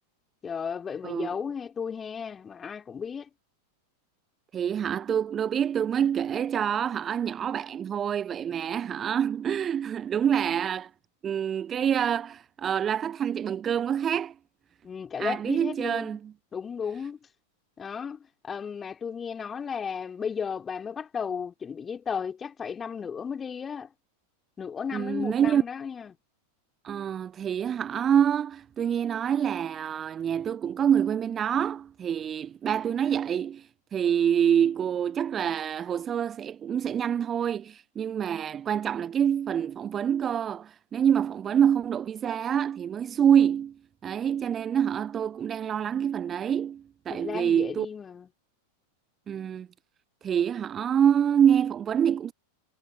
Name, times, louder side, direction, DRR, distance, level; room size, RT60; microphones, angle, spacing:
voice 1, 0.4-3.3 14.8-16.2 16.5-17.2 17.8-23.9 24.6-26.2 47.1-48.3, left 6 dB, 20° left, 3.3 m, -34 dB
voice 2, 4.5-10.9 11.2-14.3 15.2-16.3 24.9-25.6 26.8-43.7 44.0-47.9 49.3-49.7 50.2-52.3, right 8 dB, 25° right, 0.9 m, -26 dB
figure-of-eight pair, 90°, 0 cm